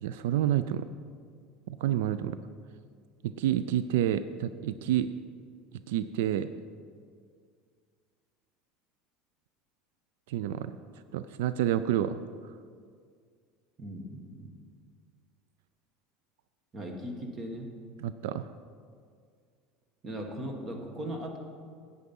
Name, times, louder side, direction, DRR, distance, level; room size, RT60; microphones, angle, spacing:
voice 1, 0.0-0.8 1.7-2.4 3.2-5.1 5.9-6.5 10.3-10.8 11.1-12.2 18.0-18.5, right 11 dB, 85° right, 13 dB, 0.3 m, -29 dB
voice 2, 13.8-14.5 16.7-17.7 20.0-21.4, equal, 25° right, 3 dB, 1.4 m, -38 dB
9.9 x 8.4 x 5.4 m, 2.1 s
supercardioid pair, 150°, 0 cm